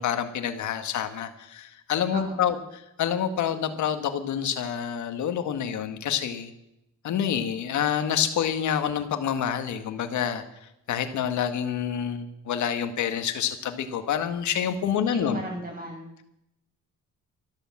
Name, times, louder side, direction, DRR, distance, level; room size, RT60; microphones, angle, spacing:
voice 1, 0.0-6.5 7.0-10.4 10.9-15.4, left 8 dB, 70° left, 8 dB, 1.8 m, -27 dB
voice 2, 2.1-2.5 14.9-16.2, right 1 dB, 30° right, 1 dB, 7.5 m, -35 dB
13.5 x 12.0 x 7.3 m, 0.83 s
cardioid pair, 90°, 30 cm